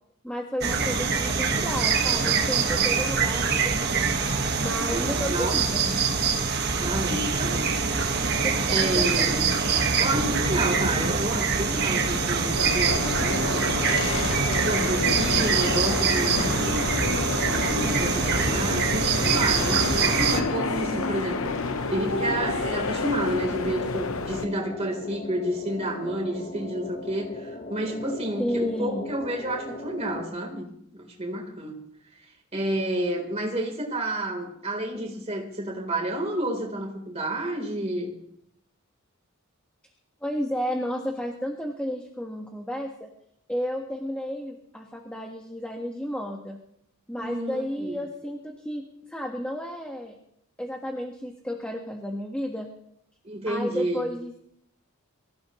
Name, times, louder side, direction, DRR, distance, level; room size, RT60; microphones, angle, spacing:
voice 1, 0.2-4.1 4.6-5.9 8.4-9.4 9.7-9.9 28.4-29.1 40.2-43.1 43.5-46.6 47.1-50.1 50.6-52.7 53.5-54.4, equal, 5° left, 0 dB, 1.5 m, -32 dB
sound 1, 0.6-20.4, right 5 dB, 50° right, 1.6 m, -24 dB
voice 2, 4.8-6.1 6.8-7.8 8.7-9.5 10.0-13.7 14.6-16.9 17.4-31.8 32.5-38.1 47.1-48.0 53.2-54.1, right 1 dB, 30° right, 0 dB, 3.8 m, -30 dB
sound 2, 11.7-24.5, left 3 dB, 70° left, 1.0 m, -30 dB
sound 3, 12.9-30.2, left 1 dB, 40° left, 1.3 m, -38 dB
24.0 x 15.5 x 3.2 m, 0.73 s
head